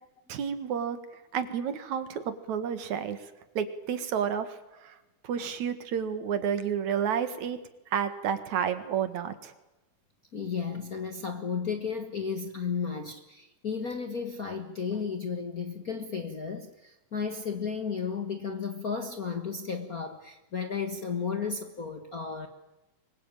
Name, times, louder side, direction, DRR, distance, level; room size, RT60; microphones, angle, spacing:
voice 1, 0.3-3.3 3.5-5.0 5.2-7.6 7.9-9.5, right 8 dB, 70° right, 11 dB, 2.9 m, -31 dB
voice 2, 10.3-22.5, left 6 dB, 40° left, 7 dB, 1.3 m, -33 dB
24.5 x 21.0 x 9.0 m, 0.98 s
omnidirectional pair, 3.5 m